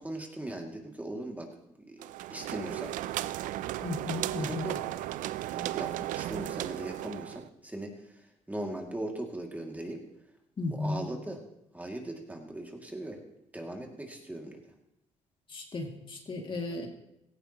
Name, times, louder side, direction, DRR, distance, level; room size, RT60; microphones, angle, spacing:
voice 1, 0.0-1.5 1.8-2.9 4.3-4.8 5.5-7.9 8.5-10.0 10.7-11.4 11.7-13.2 13.5-14.6, right 1 dB, 10° right, 1 dB, 2.5 m, -39 dB
sound 1, 2.0-7.5, right 14 dB, 80° right, 0.5 m, -35 dB
voice 2, 3.8-4.7 10.6-11.0 15.5-16.9, left 2 dB, 40° left, 1 dB, 2.5 m, -34 dB
17.0 x 14.5 x 3.1 m, 0.84 s
cardioid pair, 80°, 13 cm